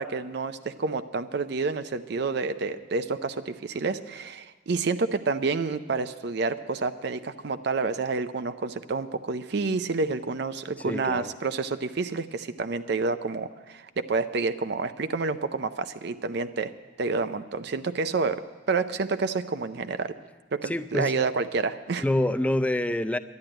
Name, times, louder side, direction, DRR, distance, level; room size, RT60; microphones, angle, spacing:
voice 1, 0.0-16.7 17.0-20.1 20.5-22.0, right 4 dB, 60° right, 10 dB, 0.5 m, -29 dB
voice 2, 10.9-11.3 20.6-21.2 22.0-23.2, left 1 dB, 5° left, 11 dB, 0.4 m, -26 dB
11.5 x 10.5 x 8.8 m, 1.4 s
head